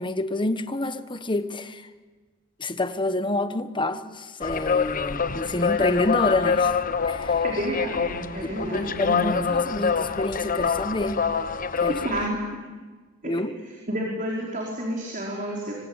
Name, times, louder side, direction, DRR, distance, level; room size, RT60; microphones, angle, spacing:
voice 1, 0.0-1.9 2.6-6.8 7.0-7.4 8.4-11.3 11.8-12.0 13.2-13.6, left 2 dB, 25° left, 1.2 m, -28 dB
sound 1, 4.4-12.3, left 6 dB, 45° left, 1.0 m, -26 dB
voice 2, 7.4-9.4 11.9-12.4 13.2-13.3 13.9-15.7, equal, 40° right, 5.0 m, -30 dB
25.0 x 25.0 x 9.0 m
head